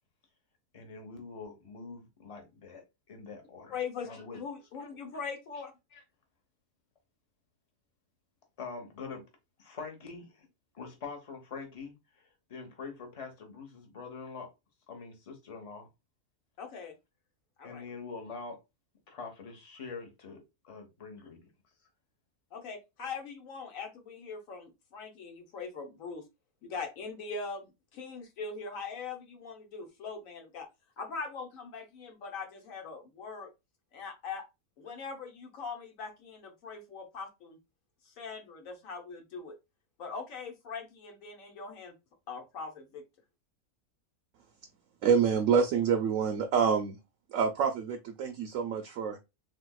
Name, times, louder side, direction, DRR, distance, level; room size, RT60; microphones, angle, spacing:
voice 1, 0.7-3.8 4.0-4.4 4.8-4.9 5.9-6.0 8.6-9.2 9.6-10.5 10.7-14.5 14.9-15.9 17.6-18.6 19.1-21.5, left 4 dB, 30° left, 0.7 m, -44 dB
voice 2, 3.7-5.7 16.6-16.9 17.6-17.8 22.5-26.2 26.6-30.7 31.0-33.5 33.9-34.4 34.8-37.6 38.1-39.5 40.0-41.9 42.3-43.0, left 5 dB, 65° left, 1.1 m, -41 dB
voice 3, 45.0-47.0 47.3-49.2, right 6 dB, 70° right, 0.8 m, -27 dB
3.5 x 2.8 x 2.2 m
omnidirectional pair, 1.6 m